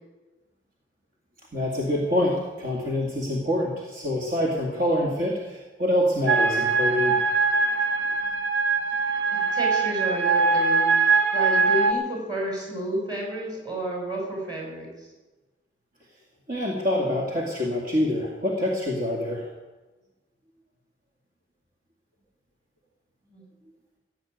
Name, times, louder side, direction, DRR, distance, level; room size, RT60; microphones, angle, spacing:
voice 1, 1.5-7.2 16.5-19.4, left 1 dB, 45° right, -2 dB, 2.2 m, -26 dB
sound 1, 6.3-11.9, right 4 dB, 75° right, 1.2 m, -22 dB
voice 2, 9.3-15.1 23.3-23.4, right 1 dB, 20° right, -1 dB, 5.4 m, -31 dB
16.5 x 8.4 x 9.2 m, 1.2 s
head